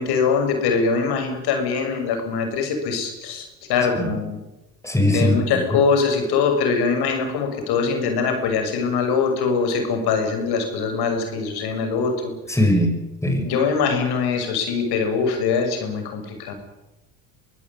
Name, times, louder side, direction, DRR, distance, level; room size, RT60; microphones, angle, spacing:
voice 1, 0.0-4.4 5.1-12.4 13.4-16.5, left 5 dB, 65° left, 6 dB, 6.6 m, -22 dB
voice 2, 4.8-5.4 12.5-12.9 13.2-13.5, left 1 dB, 5° left, 4 dB, 7.0 m, -19 dB
23.5 x 16.5 x 9.8 m, 0.97 s
hypercardioid pair, 70°, 41 cm